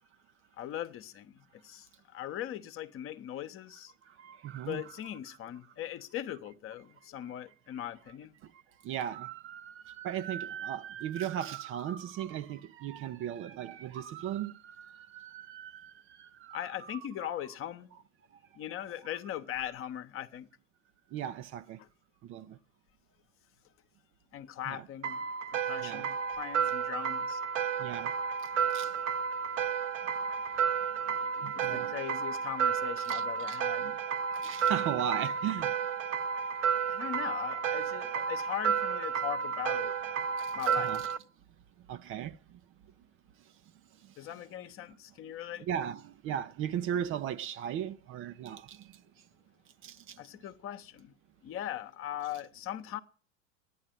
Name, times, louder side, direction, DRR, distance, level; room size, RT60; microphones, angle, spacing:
voice 1, 0.6-3.9 4.7-8.4 16.5-17.9 18.5-20.5 21.8-21.9 24.3-25.2 25.5-27.4 31.5-34.0 36.9-40.0 40.5-41.0 44.2-45.7 50.2-51.1 51.4-53.0, left 11 dB, 35° left, 1.1 m, -40 dB
voice 2, 4.1-4.9 8.4-17.0 21.1-21.8 22.2-22.6 24.7-24.8 25.8-26.1 27.8-28.1 28.7-28.9 31.0-32.0 33.1-33.6 34.3-35.7 40.4-41.1 41.9-42.6 44.0-44.1 45.2-45.3 45.6-48.9 49.8-50.2, right 10 dB, 35° right, 0.7 m, -37 dB
sound 1, 25.0-41.2, right 7 dB, 75° right, 1.2 m, -32 dB
12.5 x 10.0 x 9.1 m
hypercardioid pair, 95°, 38 cm